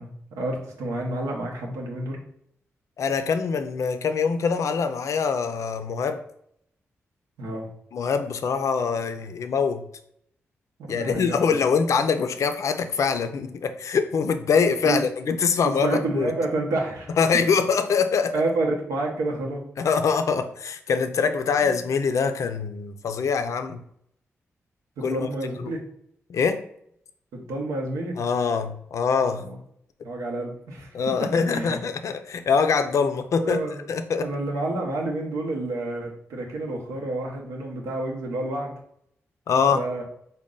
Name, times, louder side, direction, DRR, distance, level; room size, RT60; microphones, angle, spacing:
voice 1, 0.0-2.2 7.4-7.7 10.8-11.4 14.8-15.0 15.6-17.1 18.3-19.6 21.6-21.7 25.0-25.8 27.3-28.2 29.4-29.6 30.0-30.9 31.5-31.8 33.4-33.8 34.2-38.7 39.7-40.0, right 2 dB, 90° right, 0.8 m, -29 dB
voice 2, 3.0-6.2 7.9-9.9 10.9-16.3 17.1-18.3 19.8-23.8 25.0-25.3 25.6-25.7 26.3-26.6 28.2-29.4 30.9-33.6 33.9-34.3 39.5-39.9, left 5 dB, 70° left, 0.4 m, -24 dB
3.9 x 2.1 x 3.7 m
supercardioid pair, 45°, 6 cm